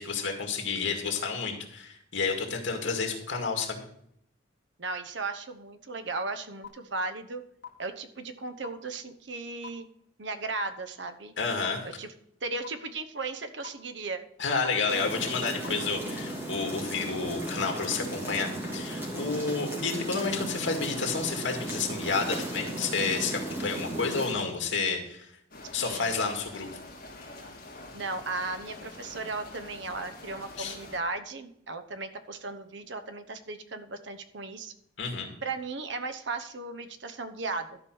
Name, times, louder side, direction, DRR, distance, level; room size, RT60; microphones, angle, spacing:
voice 1, 0.0-3.8 11.4-11.9 14.4-25.3 25.7-26.7 30.6-30.8 35.0-35.3, left 4 dB, 80° left, 3 dB, 2.1 m, -30 dB
voice 2, 4.8-7.4 7.8-9.9 10.2-11.3 11.8-12.1 12.4-14.2 15.6-15.8 25.8-26.1 27.9-34.7 35.4-37.8, right 3 dB, 70° right, 9 dB, 1.0 m, -36 dB
sound 1, 6.6-6.7 7.6-7.7 8.6-8.7 9.6-9.7 10.6-10.7 11.6-11.7 12.6-12.7 13.6-13.7 14.6-14.7 15.6-15.7, left 8 dB, 65° left, 1.9 m, -40 dB
sound 2, 14.9-24.3, right 1 dB, 10° right, 2.6 m, -35 dB
sound 3, 25.5-31.0, left 2 dB, 50° left, 2.3 m, -46 dB
12.5 x 5.2 x 6.1 m, 0.72 s
head